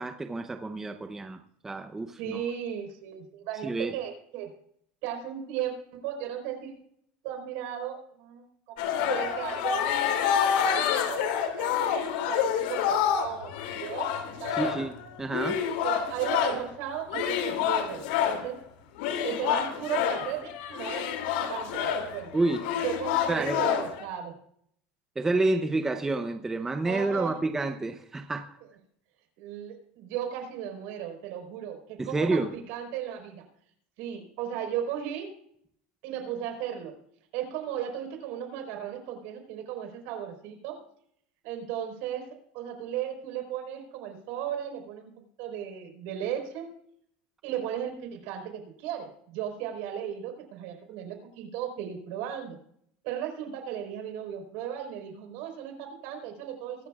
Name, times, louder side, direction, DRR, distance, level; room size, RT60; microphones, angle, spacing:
voice 1, 0.0-2.4 3.6-3.9 14.5-14.9 15.2-15.6 22.3-22.6 23.3-23.7 25.2-28.6 32.0-32.5, right 2 dB, 10° right, 7 dB, 0.6 m, -29 dB
voice 2, 2.2-4.5 5.0-6.7 7.2-10.0 10.2-10.4 10.7-11.9 12.3-14.1 14.4-14.7 15.8-18.6 19.2-21.1 21.5-22.3 22.8-24.3 26.8-27.4 29.4-33.4 34.0-35.3 36.0-36.9 37.3-40.8 41.4-42.3 42.5-45.1 45.4-46.7 47.4-52.6 53.0-56.9, right 10 dB, 60° right, 4 dB, 4.3 m, -36 dB
sound 1, 8.8-16.7 17.1-18.5 19.0-24.0, left 8 dB, 80° left, 2.7 m, -28 dB
23.5 x 12.5 x 2.4 m, 0.67 s
cardioid pair, 160°, 5 cm